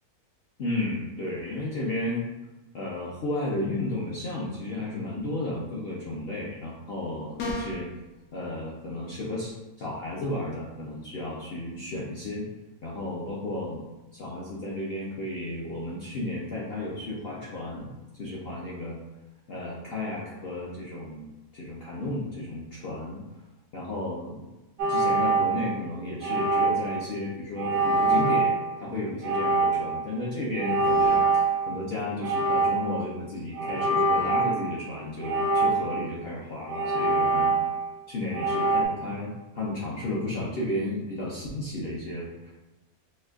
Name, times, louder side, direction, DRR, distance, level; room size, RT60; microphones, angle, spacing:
voice 1, 0.6-2.2 2.7-7.9 8.3-12.5 12.8-13.8 14.1-17.9 18.2-19.0 19.5-21.3 21.5-23.2 23.7-24.5 24.9-37.6 38.1-42.5, left 1 dB, 60° left, -6 dB, 0.6 m, -33 dB
sound 1, 7.4-7.9, left 1 dB, 85° left, 1.2 m, -32 dB
sound 2, 24.8-25.8 26.2-27.0 27.6-28.6 29.2-30.1 30.6-31.9 32.2-33.0 33.6-34.7 35.2-36.1 36.7-37.9 38.3-38.9, right 3 dB, 90° right, 1.2 m, -24 dB
4.3 x 2.4 x 2.4 m, 1.1 s
omnidirectional pair, 1.6 m